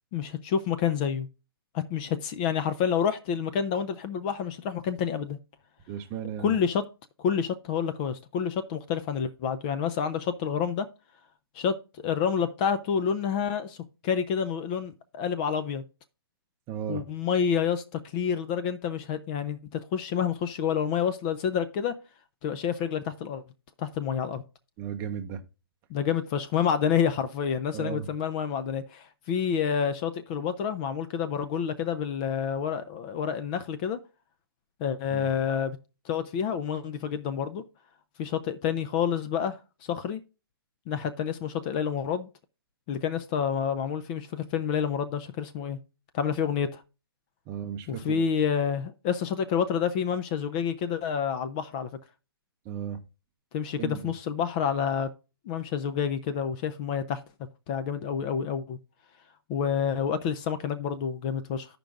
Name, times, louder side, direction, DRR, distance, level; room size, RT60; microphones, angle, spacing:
voice 1, 0.1-1.3 1.7-5.4 6.4-6.8 7.2-10.9 11.6-11.7 12.0-13.8 14.0-15.8 16.9-21.9 22.4-23.4 23.8-24.4 25.9-34.0 34.8-35.8 36.1-37.6 38.2-39.6 39.9-40.2 40.9-42.3 42.9-45.8 46.1-46.8 47.9-51.9 53.5-55.1 55.5-57.2 57.7-58.8 59.5-61.8, left 7 dB, 20° left, 0.3 m, -28 dB
voice 2, 5.9-6.6 16.7-17.0 24.8-25.4 27.7-28.1 35.1-35.3 47.5-48.2 52.7-53.0 53.8-54.0, right 8 dB, 20° right, 0.7 m, -35 dB
15.5 x 5.2 x 2.3 m
hypercardioid pair, 150°, 12 cm